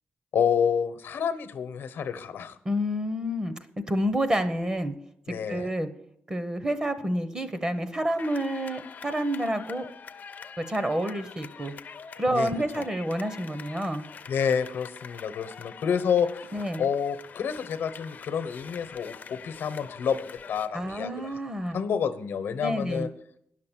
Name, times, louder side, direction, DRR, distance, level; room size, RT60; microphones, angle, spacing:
voice 1, 0.3-2.5 5.3-5.7 12.3-12.5 14.3-21.3 21.7-23.1, left 7 dB, 85° left, 11 dB, 0.9 m, -29 dB
voice 2, 2.6-3.5 3.9-4.9 5.5-5.9 6.3-9.9 10.6-11.7 12.2-14.1 16.5-16.9 20.7-21.8 22.6-23.1, equal, 20° right, 10 dB, 0.8 m, -28 dB
sound 1, 8.2-20.7, left 6 dB, 50° left, 0.6 m, -45 dB
10.5 x 6.6 x 7.3 m, 0.71 s
wide cardioid pair, 155°, 4 cm